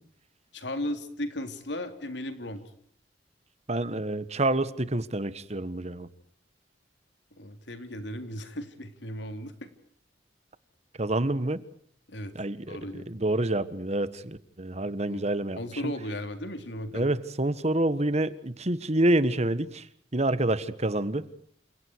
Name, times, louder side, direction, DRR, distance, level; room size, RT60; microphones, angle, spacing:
voice 1, 0.5-2.6 7.4-9.7 12.1-12.3 12.7-13.1 15.1-15.3 15.6-17.2, left 1 dB, 80° left, 7 dB, 3.5 m, -36 dB
voice 2, 3.7-6.1 11.0-11.6 12.3-15.6 15.8-15.9 16.9-19.8 20.1-21.3, right 1 dB, 40° right, 15 dB, 1.5 m, -27 dB
29.5 x 27.5 x 4.7 m, 0.64 s
head